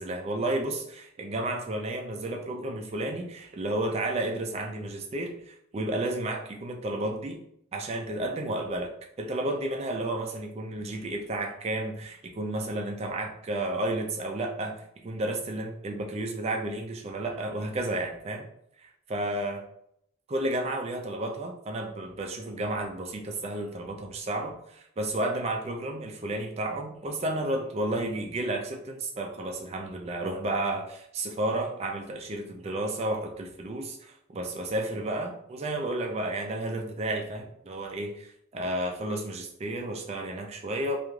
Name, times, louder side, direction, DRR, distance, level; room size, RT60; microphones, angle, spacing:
voice 1, 0.0-7.4 7.7-8.9 9.2-18.5 19.1-19.6 20.3-41.0, right 1 dB, 30° right, 3 dB, 0.3 m, -32 dB
3.1 x 2.4 x 2.2 m, 0.74 s
head